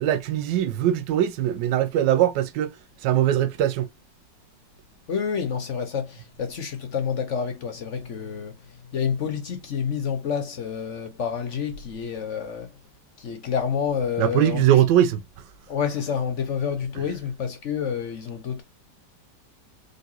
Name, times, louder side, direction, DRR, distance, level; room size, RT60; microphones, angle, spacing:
voice 1, 0.0-2.8 3.0-3.9 14.2-15.2 16.9-17.0, right 11 dB, 85° right, 1.3 m, -21 dB
voice 2, 5.1-8.5 8.9-12.7 13.2-14.6 15.7-18.6, left 7 dB, 55° left, 0.9 m, -28 dB
3.9 x 3.8 x 2.6 m
omnidirectional pair, 1.9 m